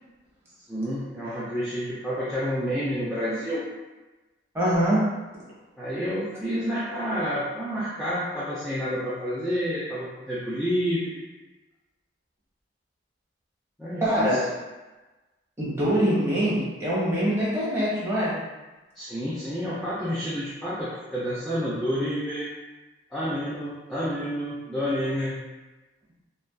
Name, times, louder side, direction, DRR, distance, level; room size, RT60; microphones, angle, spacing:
voice 1, 0.7-3.6 5.8-11.2 13.8-14.4 19.0-22.5 23.1-25.4, equal, ahead, -10 dB, 0.3 m, -29 dB
voice 2, 4.5-5.1 14.0-14.4 15.6-18.4, equal, 15° right, -8 dB, 0.8 m, -23 dB
2.6 x 2.2 x 2.2 m, 1.1 s
head